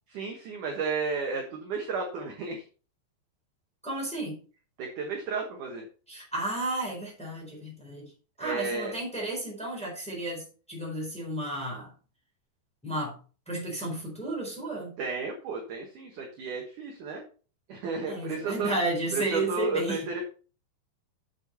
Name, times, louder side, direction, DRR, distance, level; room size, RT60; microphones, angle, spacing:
voice 1, 0.1-2.6 4.8-5.8 8.4-9.0 15.0-17.2 17.7-18.7 19.1-20.2, right 4 dB, 65° right, 2 dB, 2.1 m, -33 dB
voice 2, 3.8-4.4 6.1-8.1 8.4-10.4 10.7-11.9 12.8-13.1 13.5-14.9 18.1-20.0, right 2 dB, ahead, -2 dB, 3.4 m, -32 dB
8.4 x 7.2 x 4.2 m, 0.37 s
omnidirectional pair, 5.4 m